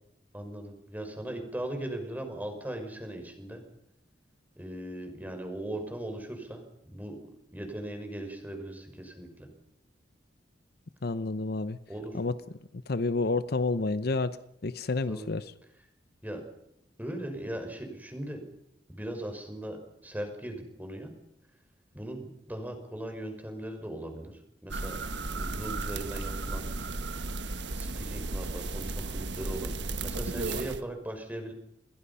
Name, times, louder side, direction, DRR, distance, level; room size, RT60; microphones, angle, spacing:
voice 1, 0.3-3.6 4.6-7.2 7.5-9.5 11.9-12.2 15.1-15.3 16.2-16.4 17.0-18.4 18.9-21.1 21.9-25.0 25.4-26.9 27.8-31.5, right 1 dB, 10° right, 5.6 m, -39 dB
voice 2, 11.0-11.8 12.1-12.3 12.9-14.4 14.6-15.5, left 3 dB, 60° left, 0.8 m, -29 dB
sound 1, 24.7-30.8, right 3 dB, 75° right, 1.4 m, -34 dB
29.0 x 21.5 x 5.6 m
head